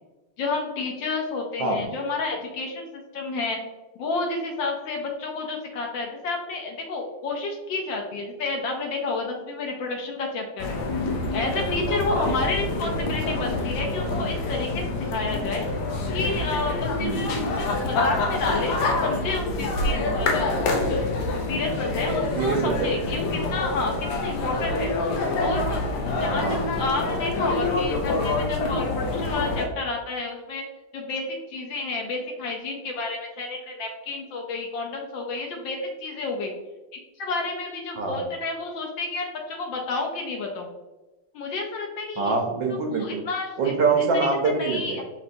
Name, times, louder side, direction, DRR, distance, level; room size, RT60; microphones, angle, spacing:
voice 1, 0.4-3.6 4.0-10.8 11.3-14.8 15.1-15.7 16.1-20.5 20.9-21.0 21.3-23.9 24.2-24.9 25.4-30.6 30.9-36.5 37.2-40.7 41.3-42.4 43.0-43.7 44.3-45.0, left 3 dB, 70° left, 2 dB, 1.3 m, -30 dB
sound 1, 10.6-29.7, left 2 dB, 85° left, 1.7 m, -26 dB
voice 2, 17.0-17.3 22.3-22.9 26.4-26.6 38.0-38.2 42.2-43.2 43.6-45.0, right 4 dB, 70° right, 1 dB, 1.3 m, -24 dB
5.7 x 3.2 x 2.6 m, 1.1 s
omnidirectional pair, 2.4 m